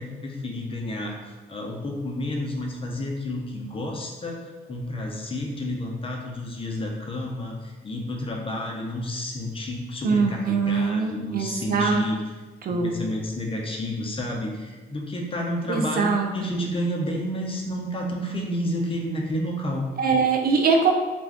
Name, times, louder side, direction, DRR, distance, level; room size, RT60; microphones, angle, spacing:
voice 1, 0.0-12.2 12.7-19.9, left 1 dB, 25° left, -1 dB, 0.6 m, -30 dB
voice 2, 10.0-12.0 12.6-12.9 15.7-16.6 20.0-20.9, right 5 dB, 50° right, 3 dB, 0.4 m, -23 dB
2.4 x 2.2 x 3.4 m, 1.3 s
cardioid pair, 90°, 20 cm